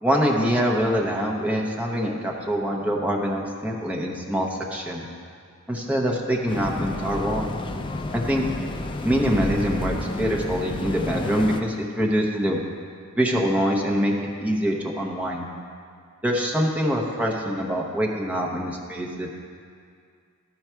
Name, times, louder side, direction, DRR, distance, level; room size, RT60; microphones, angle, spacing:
voice 1, 0.0-5.0 5.7-7.5 8.1-8.4 9.0-12.6 13.2-14.1 14.4-15.5 16.2-19.3, equal, 5° right, -2 dB, 0.8 m, -24 dB
sound 1, 6.5-11.6, left 2 dB, 20° left, 0.3 m, -31 dB
12.0 x 4.7 x 4.5 m, 2.2 s
head